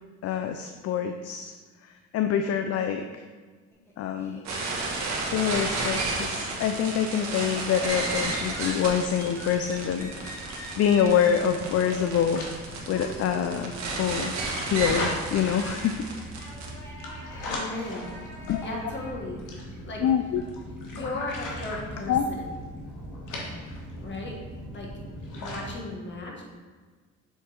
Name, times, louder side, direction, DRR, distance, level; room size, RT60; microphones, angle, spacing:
voice 1, 0.2-1.5 1.8-3.1 4.0-4.4 5.2-10.4 10.8-12.5 12.9-14.3 14.6-16.1 18.5-18.6 20.0-20.4 22.1-22.2, left 8 dB, 55° left, 7 dB, 0.4 m, -26 dB
Laughter, 3.7-5.8 6.2-19.1, equal, 10° left, 1.3 m, -45 dB
sound 1, 4.5-16.7, right 3 dB, 65° right, 1.5 m, -32 dB
sound 2, 8.8-25.7, left 1 dB, 90° left, 1.3 m, -39 dB
voice 2, 17.4-18.1 18.6-20.0 20.9-22.5 24.0-24.4 24.7-24.9 25.3-26.4, left 2 dB, 40° left, -2 dB, 1.6 m, -36 dB
7.0 x 3.7 x 4.3 m, 1.4 s
cardioid pair, 90°, 30 cm